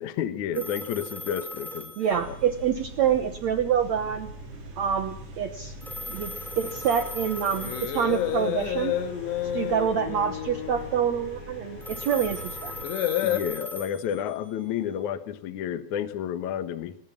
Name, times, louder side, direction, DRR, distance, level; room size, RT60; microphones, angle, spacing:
voice 1, 0.0-1.9 2.3-2.4 13.2-17.0, left 9 dB, 65° left, 12 dB, 2.1 m, -31 dB
sound 1, 0.5-2.9 5.8-8.7 11.8-14.7, left 1 dB, ahead, 3.5 m, -39 dB
voice 2, 2.0-4.3 4.8-5.7 6.1-8.9 9.5-12.7, right 8 dB, 75° right, 9 dB, 1.6 m, -26 dB
sound 2, 2.1-12.8, right 2 dB, 35° right, 4.5 m, -42 dB
sound 3, 6.5-13.4, left 11 dB, 85° left, 3.7 m, -32 dB
19.5 x 19.0 x 7.3 m, 0.71 s
omnidirectional pair, 4.8 m